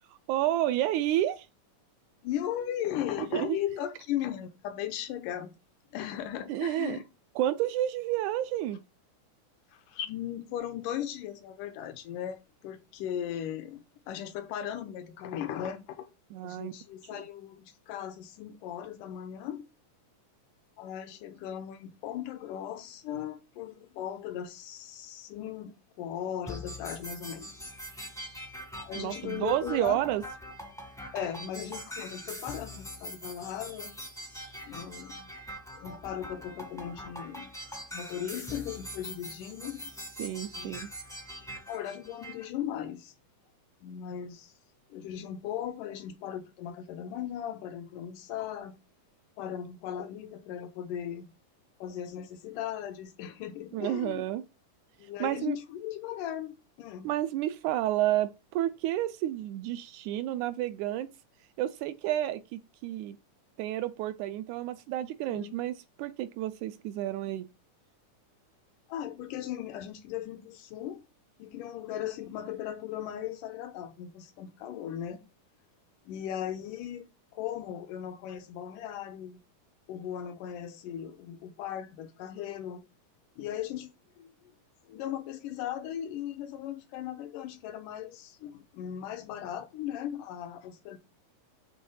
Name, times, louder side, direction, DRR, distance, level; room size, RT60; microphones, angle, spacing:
voice 1, 0.3-1.5 3.2-3.6 6.5-7.0 7.4-8.8 16.3-16.7 17.1-17.2 29.0-30.2 40.2-40.9 53.7-54.4 55.2-55.6 57.0-61.1 61.6-63.2 63.6-67.5, right 13 dB, 80° right, 1.8 m, -30 dB
voice 2, 2.2-5.6 5.9-7.0 9.9-16.1 16.4-19.6 20.8-27.5 28.8-30.0 31.1-34.0 34.6-35.3 35.7-37.5 37.9-39.8 40.6-40.8 41.7-43.1 43.8-44.5 44.9-48.8 49.4-51.3 51.8-54.2 55.0-57.1 65.3-65.6 68.9-71.0 71.4-75.2 76.1-77.1 77.3-79.4 79.9-82.9 83.4-84.5 84.9-91.0, left 10 dB, 85° left, 2.4 m, -37 dB
sound 1, 26.5-42.4, equal, 5° left, 0.5 m, -43 dB
7.7 x 3.6 x 5.5 m
omnidirectional pair, 3.7 m